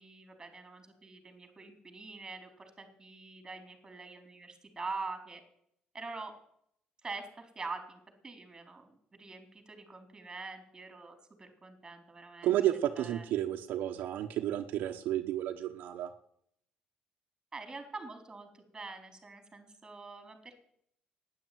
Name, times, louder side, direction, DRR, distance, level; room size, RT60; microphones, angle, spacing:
voice 1, 0.0-5.4 5.9-6.3 7.0-12.5 13.0-13.2 17.5-20.7, right 3 dB, 20° right, 7 dB, 4.0 m, -45 dB
voice 2, 12.4-16.1, right 12 dB, 75° right, 4 dB, 1.1 m, -31 dB
12.0 x 10.5 x 9.4 m, 0.69 s
cardioid pair, 95°, 3 cm